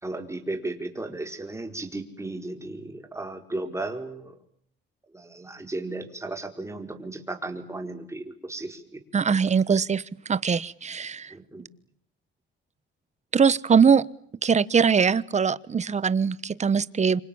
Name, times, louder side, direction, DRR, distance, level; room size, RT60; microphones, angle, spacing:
voice 1, 0.0-4.4 5.1-9.0 11.3-11.7, right 2 dB, 15° right, 5 dB, 4.8 m, -35 dB
voice 2, 9.1-10.0 10.3-11.3 13.3-14.0 14.4-17.2, right 6 dB, 35° right, 19 dB, 1.2 m, -21 dB
27.5 x 26.0 x 7.2 m, 0.64 s
cardioid pair, 90°, 20 cm